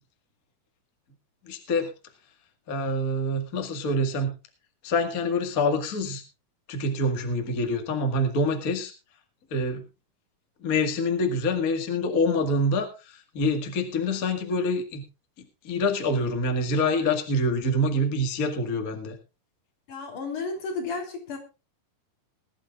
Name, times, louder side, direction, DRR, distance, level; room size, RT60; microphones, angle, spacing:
voice 1, 1.4-1.9 2.7-4.3 4.8-6.2 6.7-8.9 9.5-9.8 10.6-15.0 15.6-19.2, left 1 dB, 35° left, 5 dB, 1.5 m, -26 dB
voice 2, 19.9-21.4, left 4 dB, 55° left, 3 dB, 4.7 m, -32 dB
21.0 x 12.0 x 2.4 m, 0.29 s
omnidirectional pair, 4.4 m